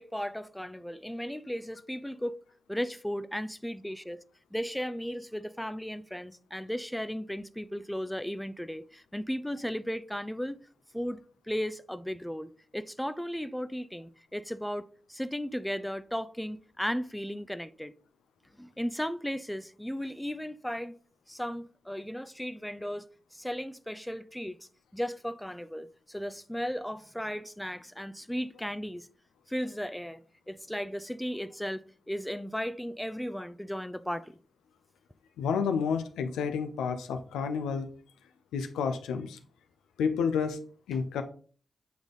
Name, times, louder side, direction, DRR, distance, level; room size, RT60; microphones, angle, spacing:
voice 1, 0.0-2.4 2.7-4.2 4.5-10.6 10.9-11.2 11.5-17.9 18.6-20.9 21.3-24.6 24.9-29.1 29.5-34.3, equal, 5° left, 0.5 m, -35 dB
voice 2, 35.4-37.9 38.5-39.4 40.0-40.6 40.9-41.2, left 6 dB, 90° left, 0.6 m, -30 dB
8.2 x 3.4 x 3.9 m
supercardioid pair, 40°, 0 cm